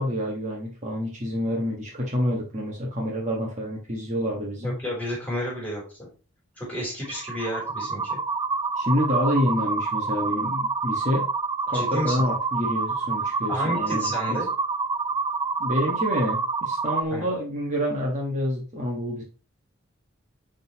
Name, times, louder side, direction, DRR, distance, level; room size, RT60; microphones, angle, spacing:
voice 1, 0.0-4.7 8.8-11.2 11.7-14.4 15.6-19.2, equal, 35° right, -2 dB, 1.5 m, -27 dB
voice 2, 4.6-6.1 6.6-8.2 11.7-12.3 13.5-14.5 17.1-17.3, equal, 10° left, -3 dB, 3.4 m, -31 dB
sound 1, 7.0-17.0, right 4 dB, 20° right, 0.4 m, -27 dB
10.5 x 3.8 x 3.0 m, 0.34 s
head